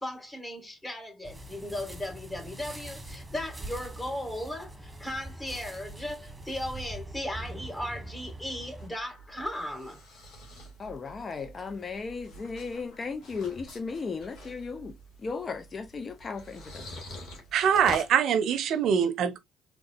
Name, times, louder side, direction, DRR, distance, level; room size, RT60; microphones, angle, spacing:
voice 1, 0.0-10.0, left 1 dB, 15° left, 2.0 m, -37 dB
sound 1, 1.2-8.9, right 1 dB, 15° right, 1.3 m, -43 dB
sound 2, 8.5-18.1, left 1 dB, 65° left, 1.9 m, -46 dB
voice 2, 10.8-17.0, left 4 dB, 40° left, 0.6 m, -36 dB
voice 3, 17.5-19.4, right 8 dB, 65° right, 0.5 m, -24 dB
3.7 x 3.5 x 2.4 m
hypercardioid pair, 60°, 0 cm